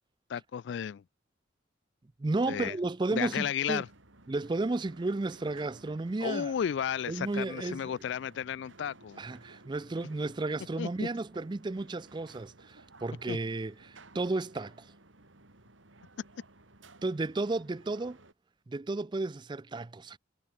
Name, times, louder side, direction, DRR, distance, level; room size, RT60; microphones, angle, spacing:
voice 1, 0.3-1.0 2.5-2.7 3.1-3.9 6.2-9.2 10.8-11.1 13.3-13.4, left 8 dB, 65° left, 0.3 m, -33 dB
voice 2, 2.2-3.8 4.3-6.5 7.1-8.0 9.2-14.9 17.0-18.2 18.7-20.2, right 2 dB, 25° right, 0.4 m, -33 dB
sound 1, 3.6-18.3, right 2 dB, 80° right, 3.0 m, -56 dB
head